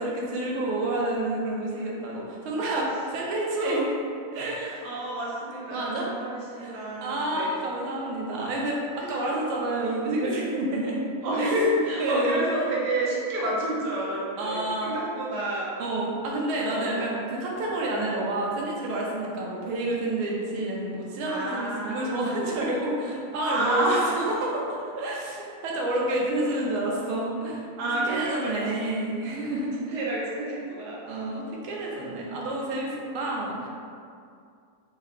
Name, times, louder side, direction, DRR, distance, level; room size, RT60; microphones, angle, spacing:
voice 1, 0.0-3.9 4.3-4.7 5.7-6.1 6.6-11.1 11.4-11.5 12.0-12.4 14.4-14.9 15.8-23.9 24.1-27.6 28.0-30.0 31.1-33.7, right 2 dB, 85° right, -3 dB, 1.5 m, -29 dB
voice 2, 4.3-7.6 8.9-9.2 11.2-15.7 16.7-17.1 21.3-22.4 23.4-24.4 27.8-28.7 29.7-31.3, right 1 dB, 65° right, -5 dB, 1.2 m, -29 dB
3.8 x 2.2 x 3.5 m, 2.3 s
omnidirectional pair, 2.2 m